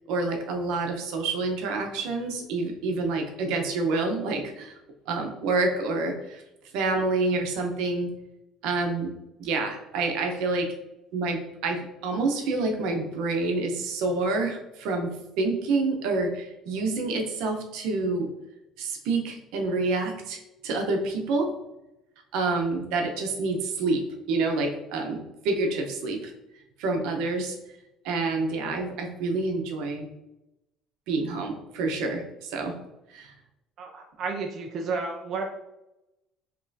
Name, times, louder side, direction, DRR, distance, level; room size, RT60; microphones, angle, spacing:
voice 1, 0.1-4.8 5.1-6.4 6.7-8.1 8.6-9.1 9.4-10.7 11.1-15.1 15.4-18.3 18.8-21.5 22.3-24.0 24.3-25.2 25.4-26.3 26.8-27.6 28.0-30.1 31.1-32.7 33.1-33.3, right 3 dB, 75° right, 3 dB, 0.8 m, -27 dB
voice 2, 33.8-35.4, right 4 dB, 35° right, 2 dB, 0.4 m, -32 dB
5.3 x 3.0 x 2.7 m, 0.92 s
cardioid pair, 170°, 0 cm